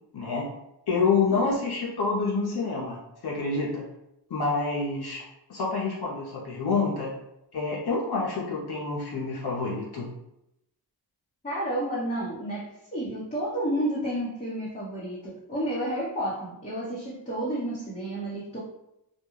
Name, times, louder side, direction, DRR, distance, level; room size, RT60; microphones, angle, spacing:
voice 1, 0.1-0.5 0.9-3.9 4.3-5.2 5.5-7.1 7.5-10.1, left 4 dB, 65° left, -4 dB, 0.7 m, -27 dB
voice 2, 11.4-18.6, right 1 dB, 15° left, -9 dB, 0.9 m, -31 dB
2.3 x 2.2 x 3.0 m, 0.86 s
cardioid pair, 45°, 43 cm